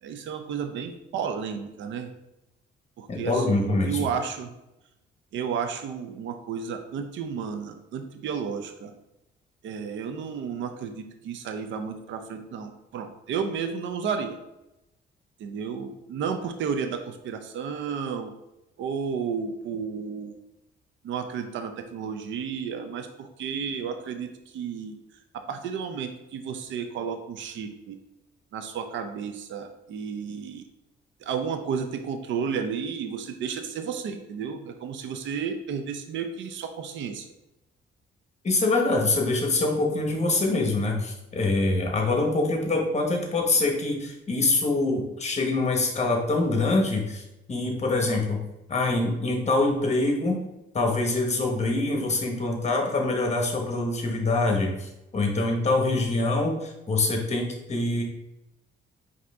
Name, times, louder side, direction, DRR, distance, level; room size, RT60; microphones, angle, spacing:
voice 1, 0.0-2.1 3.0-4.5 5.3-8.9 9.6-14.4 15.4-18.3 18.8-20.3 21.0-25.0 25.3-28.0 28.5-30.6 31.2-37.3, right 6 dB, 70° right, 6 dB, 0.5 m, -32 dB
voice 2, 3.1-4.0 38.4-47.2 47.5-48.4 48.7-50.4 50.7-58.0, left 2 dB, 35° left, 1 dB, 1.1 m, -25 dB
4.9 x 2.8 x 3.5 m, 0.91 s
cardioid pair, 90°, 20 cm